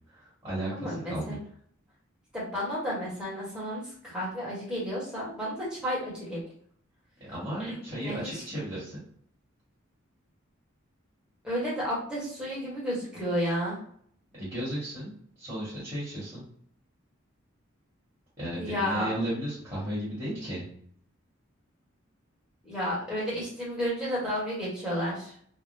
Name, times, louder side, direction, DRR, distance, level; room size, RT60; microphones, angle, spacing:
voice 1, 0.1-1.4 7.3-9.0 14.4-15.1 15.4-16.4 18.4-20.6, right 1 dB, 25° right, -10 dB, 1.4 m, -34 dB
voice 2, 0.7-1.4 2.3-6.4 7.6-8.4 11.4-13.8 18.6-19.1 22.6-25.3, equal, 5° right, -8 dB, 1.1 m, -32 dB
3.5 x 2.1 x 2.7 m, 0.63 s
head